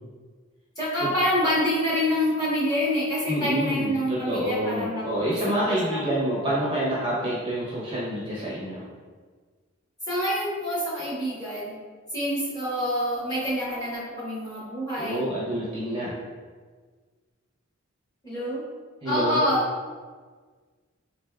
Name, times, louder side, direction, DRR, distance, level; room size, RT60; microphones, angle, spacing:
voice 1, 0.8-5.0 5.6-6.0 10.1-11.7 12.1-15.2 18.2-18.6 19.0-19.6, equal, 20° left, -10 dB, 1.3 m, -26 dB
voice 2, 3.3-8.8 15.0-16.1 19.0-19.4, equal, 25° right, -7 dB, 0.7 m, -27 dB
3.9 x 3.2 x 2.3 m, 1.5 s
head